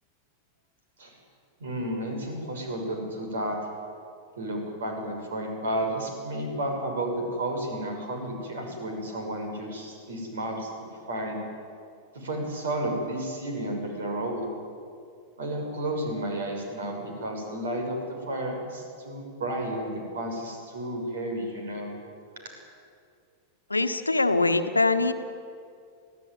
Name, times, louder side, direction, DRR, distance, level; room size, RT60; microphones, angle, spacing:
voice 1, 1.6-3.6 4.4-10.7 11.1-11.4 12.1-14.5 15.4-21.9, right 1 dB, 65° right, 3 dB, 6.4 m, -32 dB
voice 2, 23.7-25.1, left 3 dB, 80° left, 9 dB, 1.3 m, -23 dB
26.0 x 17.0 x 9.6 m, 2.4 s
figure-of-eight pair, 90°, 0 cm